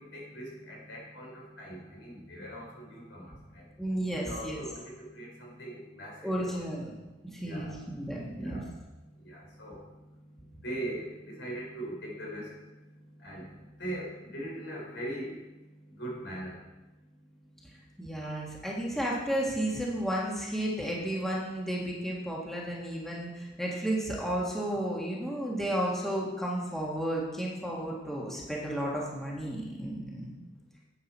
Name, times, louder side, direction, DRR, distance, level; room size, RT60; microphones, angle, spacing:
voice 1, 0.0-3.7 4.2-6.6 7.4-7.7 8.4-8.7 9.2-9.9 10.6-12.6 13.2-15.4 15.9-16.6, right 1 dB, 85° left, -2 dB, 3.8 m, -41 dB
voice 2, 3.8-4.6 6.2-6.9 7.2-8.6 18.0-30.3, right 1 dB, ahead, -4 dB, 1.7 m, -33 dB
10.5 x 8.7 x 4.3 m, 1.1 s
head